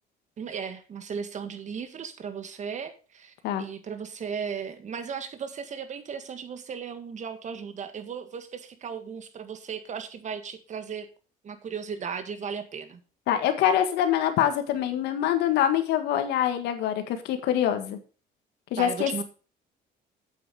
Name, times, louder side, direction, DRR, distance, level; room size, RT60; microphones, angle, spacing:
voice 1, 0.4-11.1 11.4-13.0 18.8-19.2, right 6 dB, 45° right, 9 dB, 1.8 m, -36 dB
voice 2, 13.3-18.0 18.7-19.2, left 10 dB, 85° left, 8 dB, 1.8 m, -25 dB
8.5 x 8.2 x 5.0 m, 0.35 s
cardioid pair, 110°, 17 cm